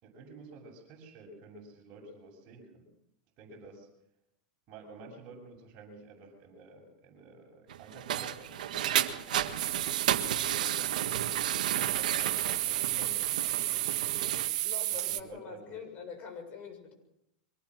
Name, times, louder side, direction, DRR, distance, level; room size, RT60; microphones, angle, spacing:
voice 1, 0.0-2.9 3.4-3.9 4.7-14.4 14.9-15.8, right 3 dB, 40° right, -2 dB, 7.0 m, -51 dB
sound 1, 7.7-14.5, right 10 dB, 85° right, 1.7 m, -33 dB
sound 2, 9.6-15.2, right 16 dB, 70° right, 1.2 m, -32 dB
voice 2, 14.6-16.9, left 6 dB, 35° left, 4 dB, 7.3 m, -44 dB
24.0 x 19.0 x 6.3 m, 0.81 s
supercardioid pair, 130°, 4 cm